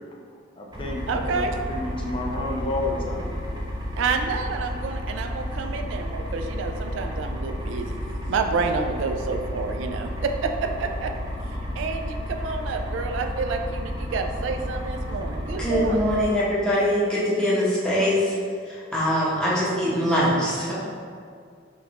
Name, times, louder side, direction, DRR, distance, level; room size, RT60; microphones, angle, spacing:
voice 1, 0.6-3.3, left 2 dB, 30° left, 0 dB, 0.4 m, -31 dB
sound 1, 0.7-16.2, equal, 20° right, 0.6 m, -32 dB
voice 2, 1.1-1.6 4.0-8.0 8.3-11.1 11.7-16.0, right 4 dB, 75° right, 5 dB, 0.3 m, -29 dB
voice 3, 15.6-18.4 18.6-20.7, equal, 5° left, -9 dB, 0.9 m, -23 dB
5.1 x 2.5 x 2.9 m, 2.2 s
head